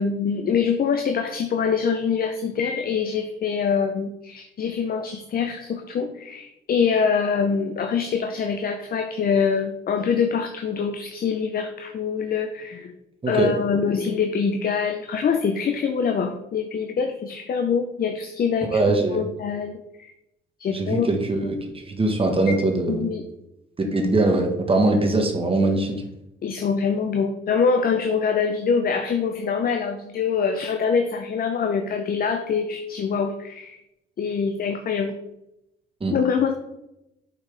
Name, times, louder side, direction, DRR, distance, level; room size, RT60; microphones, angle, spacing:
voice 1, 0.0-13.0 13.3-18.8 19.1-20.1 20.6-21.1 22.5-22.6 22.9-23.2 26.4-33.8 34.2-35.2 36.1-36.5, left 6 dB, 50° left, 6 dB, 0.7 m, -24 dB
voice 2, 18.6-19.3 20.7-23.1 23.8-26.0 36.0-36.1, right 2 dB, 25° right, 3 dB, 1.5 m, -22 dB
7.2 x 5.8 x 3.5 m, 0.87 s
cardioid pair, 90°, 20 cm